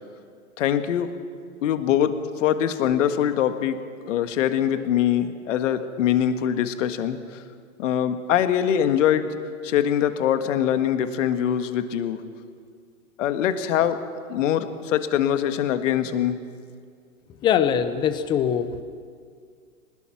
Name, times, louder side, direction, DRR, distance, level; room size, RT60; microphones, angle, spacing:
voice 1, 0.6-1.1 1.6-2.1 2.4-3.8 4.0-7.4 7.8-9.3 9.6-12.2 13.2-14.0 14.3-16.4, left 10 dB, 55° left, 9 dB, 1.6 m, -23 dB
voice 2, 17.4-18.8, left 8 dB, 10° left, 12 dB, 0.5 m, -22 dB
22.5 x 20.0 x 5.9 m, 2.1 s
hypercardioid pair, 125°, 44 cm